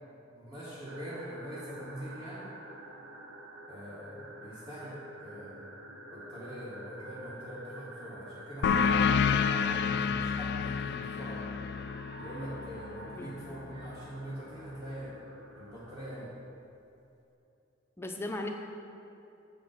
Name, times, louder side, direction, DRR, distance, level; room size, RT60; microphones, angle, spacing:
voice 1, 0.3-2.5 3.7-5.7 6.1-11.4 12.2-15.1 15.6-16.3, equal, 25° right, -8 dB, 1.6 m, -43 dB
sound 1, 0.9-16.2, right 1 dB, 75° right, 1.0 m, -48 dB
sound 2, 8.6-13.8, left 6 dB, 60° left, 0.3 m, -29 dB
voice 2, 13.2-13.5 18.0-18.5, left 2 dB, 15° left, 2 dB, 0.6 m, -37 dB
7.6 x 5.8 x 6.4 m, 2.8 s
head